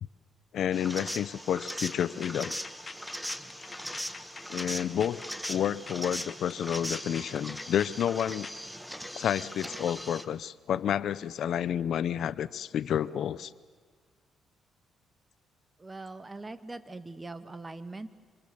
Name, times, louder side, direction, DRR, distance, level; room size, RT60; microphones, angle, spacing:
voice 1, 0.5-2.6 4.5-5.2 5.5-8.5 9.2-13.5, left 9 dB, 70° left, 17 dB, 0.7 m, -30 dB
sound 1, 0.7-10.3, equal, ahead, 1.3 m, -39 dB
sound 2, 1.8-8.6, left 4 dB, 30° left, 1.6 m, -46 dB
voice 2, 15.8-18.1, right 2 dB, 20° right, 11 dB, 1.6 m, -41 dB
27.5 x 26.0 x 7.0 m, 1.5 s
cardioid pair, 90°, 0 cm